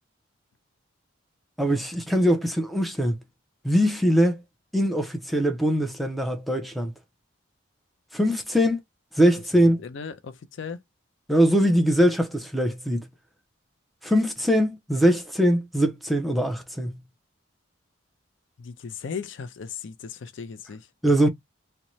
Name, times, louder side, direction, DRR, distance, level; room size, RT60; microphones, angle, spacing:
voice 1, 1.6-3.2 3.6-4.4 4.7-6.9 8.1-8.8 9.1-9.8 11.3-13.1 14.0-17.0 21.0-21.3, equal, ahead, 0.4 m, -22 dB
voice 2, 9.6-10.8 18.6-20.9, left 6 dB, 60° left, 0.4 m, -37 dB
2.6 x 2.1 x 3.0 m
head